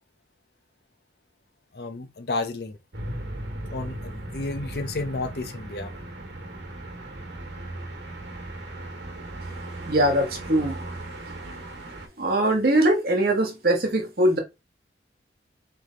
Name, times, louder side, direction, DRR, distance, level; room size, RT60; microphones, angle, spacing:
voice 1, 1.7-3.1 3.7-5.9, left 3 dB, 60° left, 0.7 m, -32 dB
sound 1, 2.9-12.1, right 1 dB, 90° right, 1.2 m, -37 dB
voice 2, 9.9-10.7 12.2-14.4, right 1 dB, 55° right, 1.2 m, -21 dB
3.2 x 3.2 x 3.7 m
head